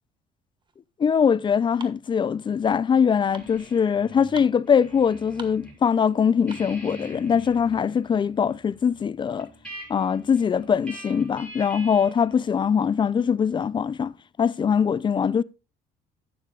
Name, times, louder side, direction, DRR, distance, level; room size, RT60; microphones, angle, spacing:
sound 1, 0.6-6.9, right 5 dB, 30° right, 1.3 m, -48 dB
voice 1, 1.0-9.5 9.9-15.4, left 7 dB, 30° left, 0.4 m, -22 dB
sound 2, 3.3-5.8 6.1-12.2, right 1 dB, 5° left, 6.2 m, -44 dB
11.5 x 9.1 x 2.4 m
cardioid pair, 110°, 17 cm